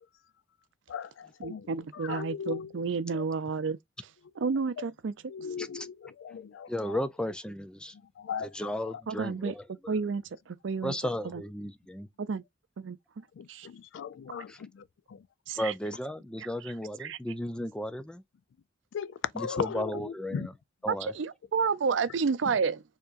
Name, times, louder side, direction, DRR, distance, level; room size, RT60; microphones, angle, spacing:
voice 1, 0.9-2.7 3.1-3.2 5.3-6.7 8.2-8.5 13.4-14.8 15.1-15.2 18.9-20.0 20.3-20.5, left 7 dB, 80° left, 0.3 m, -37 dB
voice 2, 1.4-3.8 4.4-5.1 9.1-9.5 9.9-10.2 10.6-10.9 11.2-11.4 12.2-12.4 12.8-13.0 13.5-13.7 15.5-15.7 17.0-17.2 20.9-22.8, right 5 dB, 80° right, 0.5 m, -30 dB
voice 3, 6.7-7.9 8.4-9.6 10.8-12.1 14.5-14.6 15.6-18.2 19.3-20.5 20.8-21.1, left 1 dB, 5° left, 0.3 m, -34 dB
4.5 x 2.9 x 2.5 m
head